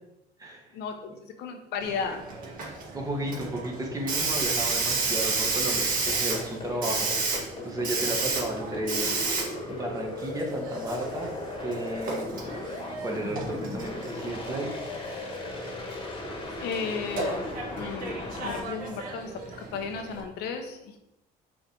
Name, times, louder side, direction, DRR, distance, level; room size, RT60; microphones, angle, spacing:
voice 1, 1.4-2.2 16.6-19.3 19.7-20.8, left 5 dB, 80° left, 5 dB, 0.9 m, -34 dB
Hiss, 1.8-20.2, right 3 dB, 55° right, 1.7 m, -32 dB
voice 2, 2.9-9.1 9.7-11.3 11.6-12.3 13.0-14.8, right 1 dB, 20° right, 0 dB, 1.4 m, -33 dB
sound 1, 6.1-18.6, left 2 dB, 30° left, 1.4 m, -37 dB
6.3 x 3.3 x 4.5 m, 0.88 s
cardioid pair, 110°, 17 cm